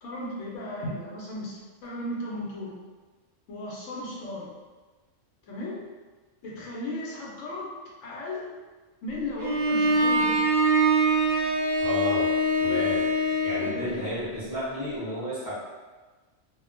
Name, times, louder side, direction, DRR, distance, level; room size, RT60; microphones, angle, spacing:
voice 1, 0.0-2.7 3.5-4.5 5.5-5.8 6.4-7.7 8.0-8.5 9.0-10.4 13.6-14.1, left 1 dB, 80° left, -4 dB, 1.0 m, -35 dB
Bowed string instrument, 9.4-13.8, right 1 dB, 70° right, 0.9 m, -23 dB
voice 2, 11.8-12.3 12.6-13.0 13.4-15.6, left 1 dB, 20° right, -12 dB, 0.6 m, -31 dB
2.4 x 2.1 x 2.5 m, 1.3 s
omnidirectional pair, 1.3 m